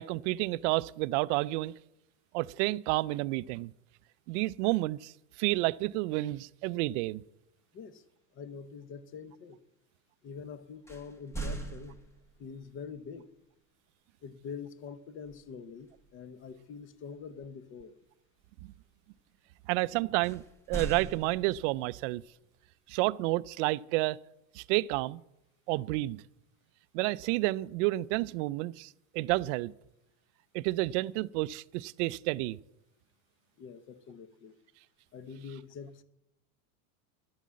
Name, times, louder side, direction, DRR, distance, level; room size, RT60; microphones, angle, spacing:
voice 1, 0.0-1.7 2.3-3.7 4.3-7.2 19.7-22.2 22.9-24.2 24.5-25.2 25.7-26.2 26.9-29.7 30.5-32.6, right 19 dB, 55° right, 0.5 m, -30 dB
voice 2, 8.3-9.6 10.2-12.0 12.4-13.3 14.2-17.9 33.6-34.6 35.1-36.0, left 6 dB, 30° left, 0.8 m, -45 dB
sound 1, 10.9-12.5 15.3-15.6 16.0-16.2 20.2-21.9, right 3 dB, 5° left, 1.1 m, -40 dB
11.5 x 9.2 x 7.5 m
supercardioid pair, 150°, 42 cm